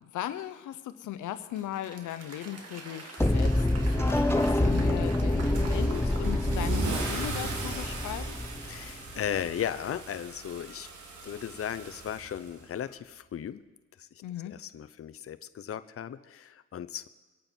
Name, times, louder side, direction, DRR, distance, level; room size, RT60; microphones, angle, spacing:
voice 1, 0.0-8.4 14.2-14.5, left 12 dB, 85° left, 11 dB, 0.8 m, -38 dB
Applause / Crowd, 1.3-9.0, right 3 dB, 55° right, 2.2 m, -46 dB
sound 1, 3.2-9.2, left 1 dB, 10° left, 0.8 m, -27 dB
Car / Engine starting / Accelerating revving vroom, 5.5-12.9, right 3 dB, 75° right, 2.6 m, -38 dB
voice 2, 8.7-10.9 11.2-13.6 14.0-14.1 14.4-17.1, left 9 dB, 50° left, 12 dB, 0.7 m, -36 dB
23.0 x 8.8 x 4.4 m, 1.2 s
cardioid pair, 70°, 30 cm